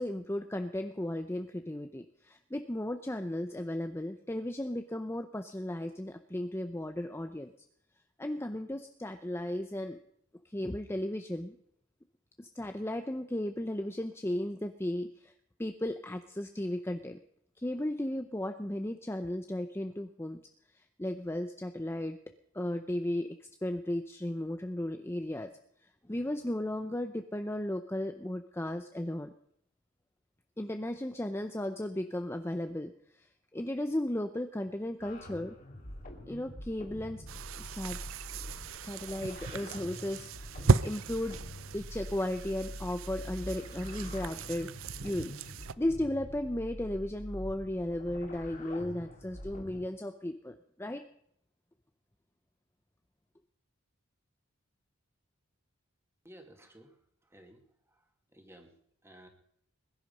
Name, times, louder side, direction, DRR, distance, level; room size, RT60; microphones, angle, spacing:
voice 1, 0.0-7.5 8.2-10.0 10.4-11.6 12.4-15.3 15.6-17.2 17.6-20.4 20.7-22.2 22.5-25.5 26.1-29.3 30.6-33.3 33.5-35.6 36.3-37.2 37.6-38.0 38.8-40.3 40.8-41.4 41.7-44.7 45.0-51.0, left 1 dB, 10° left, 7 dB, 0.6 m, -35 dB
sound 1, 35.0-49.8, equal, 40° left, 2.5 m, -45 dB
sound 2, 37.3-45.7, right 4 dB, 70° right, 0.6 m, -35 dB
voice 2, 56.2-57.0 57.2-57.6 57.9-58.0 58.3-58.7 59.0-59.3, right 1 dB, 10° right, 4 dB, 2.4 m, -54 dB
21.0 x 11.0 x 5.4 m, 0.70 s
head